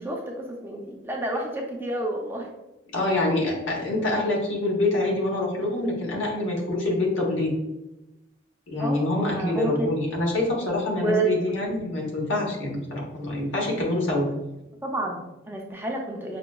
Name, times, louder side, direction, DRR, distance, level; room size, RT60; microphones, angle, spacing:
voice 1, 0.0-2.5 8.8-9.0 9.3-9.9 11.0-11.3 14.8-16.4, right 2 dB, 10° right, 0 dB, 0.4 m, -29 dB
voice 2, 2.9-7.5 8.7-14.4, left 2 dB, 75° left, -1 dB, 1.0 m, -26 dB
5.6 x 2.2 x 2.3 m, 0.94 s
head